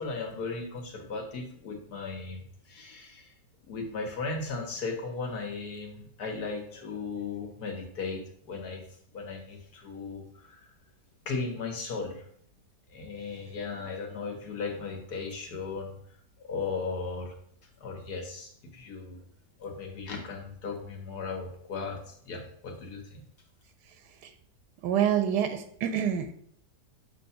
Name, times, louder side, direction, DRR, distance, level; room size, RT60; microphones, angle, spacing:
voice 1, 0.0-3.3 3.6-8.8 9.1-10.7 11.2-12.2 12.9-16.0 16.4-17.3 17.8-19.2 19.6-23.2, left 4 dB, 65° left, 1 dB, 1.7 m, -36 dB
voice 2, 24.8-26.3, right 9 dB, 80° right, 10 dB, 1.2 m, -26 dB
7.1 x 2.9 x 5.6 m, 0.66 s
omnidirectional pair, 1.8 m